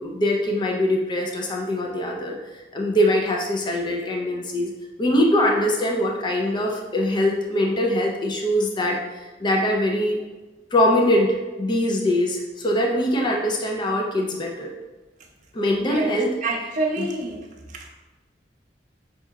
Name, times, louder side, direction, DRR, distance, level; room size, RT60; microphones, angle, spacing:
voice 1, 0.0-2.4 2.7-4.7 5.0-10.2 10.7-14.7 15.5-16.3 17.0-17.1, left 1 dB, 25° left, 0 dB, 0.4 m, -22 dB
voice 2, 15.8-17.4 17.7-17.9, right 2 dB, 45° right, -1 dB, 0.6 m, -27 dB
5.4 x 2.8 x 2.3 m, 1.2 s
head